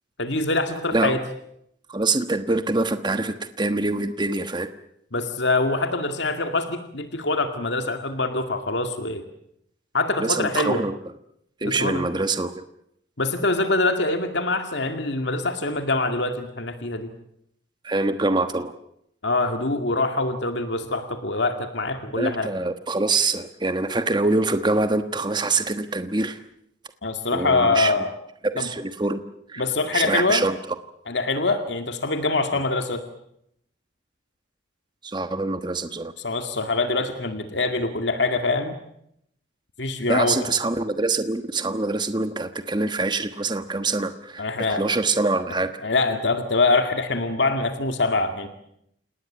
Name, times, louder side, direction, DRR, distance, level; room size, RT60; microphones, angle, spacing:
voice 1, 0.2-1.2 5.1-9.2 9.9-10.8 11.6-12.0 13.2-17.1 19.2-22.5 27.0-28.1 28.6-28.7 29.6-30.5 31.1-33.0 36.2-38.7 39.8-40.5 44.4-44.8 45.8-48.5, left 3 dB, 70° left, 7 dB, 2.2 m, -24 dB
voice 2, 1.9-4.7 10.2-10.9 11.6-12.6 17.8-18.7 22.2-26.4 27.3-27.9 28.4-29.2 29.5-29.6 29.9-30.5 35.0-36.1 40.1-45.7, right 3 dB, 25° right, 9 dB, 1.2 m, -24 dB
28.5 x 19.0 x 9.1 m, 0.76 s
head